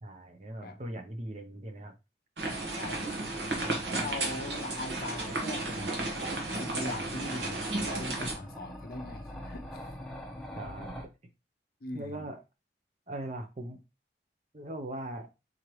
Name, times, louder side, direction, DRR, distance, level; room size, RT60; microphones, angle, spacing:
voice 1, 0.0-2.0 10.6-11.0 11.9-12.4 13.1-13.8 14.5-15.3, right 1 dB, 40° right, 0.6 m, -40 dB
sound 1, 2.4-8.3, right 2 dB, 75° right, 1.2 m, -33 dB
voice 2, 2.7-3.1 4.0-5.9 6.6-9.9 11.8-12.3, left 2 dB, 55° left, 0.5 m, -40 dB
sound 2, 5.1-11.1, left 1 dB, ahead, 0.7 m, -45 dB
3.8 x 3.1 x 3.0 m
head